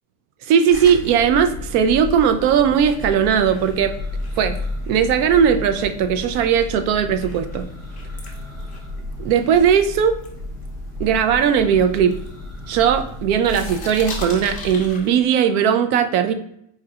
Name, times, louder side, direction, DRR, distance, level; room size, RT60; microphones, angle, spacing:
voice 1, 0.5-3.9 4.4-4.6 4.9-7.7 9.2-10.2 11.0-12.2 12.7-16.3, right 8 dB, 75° right, 9 dB, 0.6 m, -18 dB
sound 1, 0.7-5.3 5.7-9.8 10.2-11.4 11.9-13.1 13.4-15.4, left 4 dB, 15° left, 0.6 m, -40 dB
Church bell, 0.7-15.0, left 2 dB, 25° right, 0.9 m, -33 dB
4.5 x 2.9 x 2.3 m, 0.72 s
cardioid pair, 170°, 44 cm